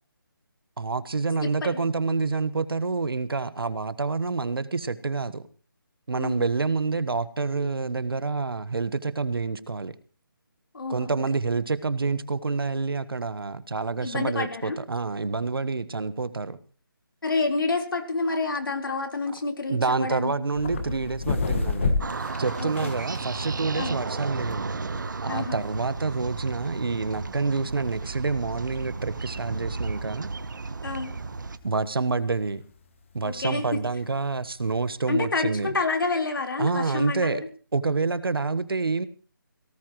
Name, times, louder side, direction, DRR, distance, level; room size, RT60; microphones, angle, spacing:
voice 1, 0.8-5.5 6.1-9.9 10.9-16.6 19.7-22.0 22.4-24.7 25.2-30.3 31.6-32.6 33.1-35.8 36.6-37.4 37.7-39.1, right 4 dB, 90° right, 14 dB, 1.3 m, -27 dB
voice 2, 1.4-1.8 6.2-6.5 10.7-11.2 14.0-14.8 17.2-20.3 22.6-22.9 23.7-24.0 25.3-25.6 30.8-31.1 33.2-33.7 35.1-37.5, left 3 dB, 70° left, 2 dB, 4.1 m, -28 dB
sound 1, 20.5-34.9, left 3 dB, 35° left, 1.7 m, -34 dB
sound 2, 22.0-31.6, right 4 dB, 55° right, 1.1 m, -34 dB
18.0 x 17.5 x 3.1 m, 0.39 s
hypercardioid pair, 175°, 12 cm